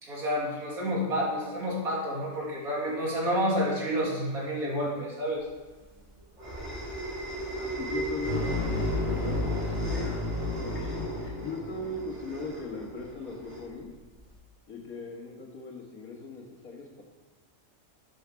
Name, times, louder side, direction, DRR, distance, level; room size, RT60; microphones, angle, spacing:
voice 1, 0.0-5.5, equal, 90° right, -4 dB, 3.0 m, -29 dB
sound 1, 5.5-14.3, right 1 dB, 55° right, 3.4 m, -37 dB
voice 2, 7.5-9.8 10.6-13.9 14.7-17.1, left 3 dB, 85° left, 0 dB, 2.1 m, -39 dB
sound 2, 8.2-11.8, left 2 dB, 30° left, 2.4 m, -31 dB
13.0 x 7.6 x 3.4 m, 1.3 s
omnidirectional pair, 1.5 m